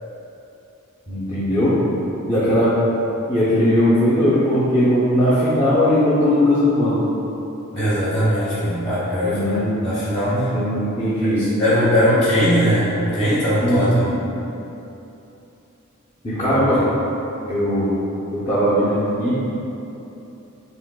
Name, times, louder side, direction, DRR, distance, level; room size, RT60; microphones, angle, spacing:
voice 1, 1.1-1.7 2.3-2.7 3.3-7.0 9.2-9.8 10.3-11.5 13.6-14.0 16.2-16.8 17.5-17.9 18.3-19.4, equal, 25° left, -11 dB, 0.6 m, -19 dB
voice 2, 7.7-10.5 11.2-11.3 11.6-14.1 16.5-16.6, equal, 55° left, -11 dB, 1.4 m, -20 dB
5.1 x 3.4 x 2.2 m, 2.9 s
head